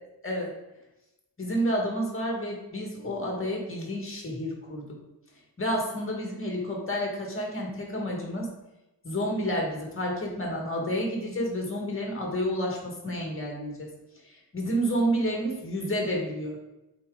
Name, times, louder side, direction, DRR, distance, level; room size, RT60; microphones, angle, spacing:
voice 1, 0.2-0.5 1.4-5.0 5.6-8.5 9.0-13.9 14.5-16.6, equal, 30° left, -1 dB, 1.8 m, -30 dB
8.5 x 4.4 x 3.9 m, 0.95 s
wide cardioid pair, 155°, 44 cm